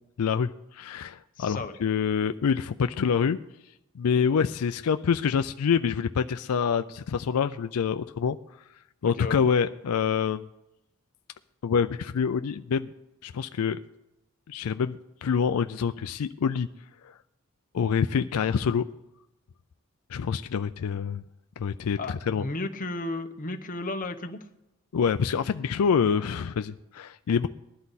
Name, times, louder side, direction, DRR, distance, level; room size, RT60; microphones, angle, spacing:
voice 1, 0.2-3.4 3.9-8.4 9.0-10.5 11.6-12.9 13.2-13.8 14.5-16.7 17.0-17.1 17.7-18.9 20.1-21.2 21.6-22.4 24.9-27.5, left 6 dB, 85° left, 10 dB, 0.4 m, -26 dB
voice 2, 1.4-1.8 9.0-9.4 22.0-24.4, left 2 dB, 40° left, 5 dB, 0.9 m, -34 dB
20.0 x 11.5 x 4.1 m, 0.91 s
head